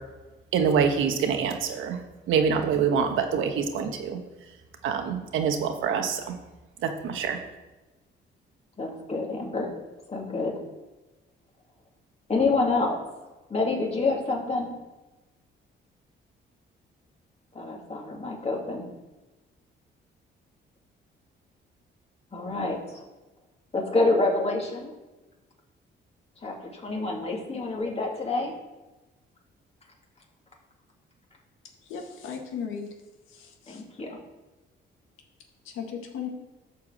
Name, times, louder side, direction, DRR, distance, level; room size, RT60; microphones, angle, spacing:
voice 1, 0.5-2.0 2.3-4.2 4.8-6.4 6.8-7.4, right 6 dB, 85° right, 5 dB, 1.3 m, -25 dB
voice 2, 8.8-9.7 10.1-10.5 12.3-13.0 13.5-14.7 17.5-18.9 22.3-23.0 23.7-24.9 26.4-28.5 33.7-34.2, left 3 dB, 30° left, 0 dB, 2.6 m, -27 dB
voice 3, 31.8-32.9 33.3-33.8 35.6-36.3, left 7 dB, 90° left, 2 dB, 1.7 m, -36 dB
11.0 x 4.7 x 7.5 m, 1.1 s
cardioid pair, 90°, 20 cm